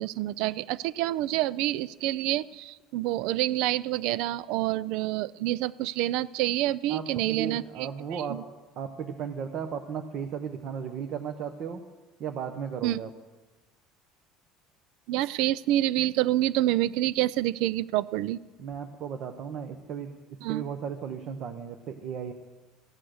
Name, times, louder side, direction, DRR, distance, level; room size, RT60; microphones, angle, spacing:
voice 1, 0.0-8.4 12.8-13.0 15.1-18.4 20.4-20.6, right 15 dB, 60° right, 20 dB, 0.4 m, -27 dB
voice 2, 6.9-8.4 8.8-11.8 12.2-13.1 18.6-20.1 20.5-22.3, right 7 dB, 40° right, 5 dB, 0.9 m, -35 dB
15.5 x 11.5 x 6.4 m, 1.2 s
cardioid pair, 170°, 0 cm